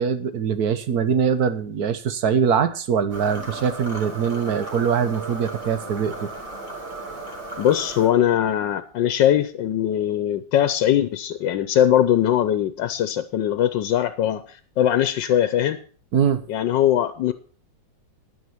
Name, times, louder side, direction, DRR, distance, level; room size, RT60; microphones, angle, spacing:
voice 1, 0.0-6.3 16.1-16.4, right 7 dB, 60° right, 12 dB, 1.4 m, -22 dB
sound 1, 3.0-7.4, right 4 dB, 80° right, 8.4 m, -42 dB
sound 2, 3.1-8.1, right 2 dB, 30° right, 2.7 m, -35 dB
voice 2, 7.6-15.8 16.5-17.3, left 11 dB, 90° left, 12 dB, 1.4 m, -21 dB
10.5 x 9.4 x 5.7 m, 0.41 s
omnidirectional pair, 1.9 m